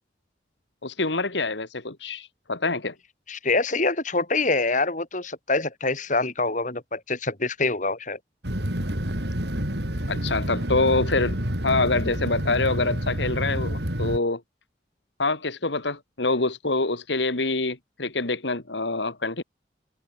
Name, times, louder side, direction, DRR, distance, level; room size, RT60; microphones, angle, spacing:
voice 1, 0.8-2.9 10.1-14.4 15.2-19.4, left 3 dB, 80° left, 2.4 m, -26 dB
voice 2, 3.3-8.2, left 3 dB, 45° left, 5.6 m, -25 dB
sound 1, 8.4-14.2, equal, 65° right, 5.4 m, -28 dB
head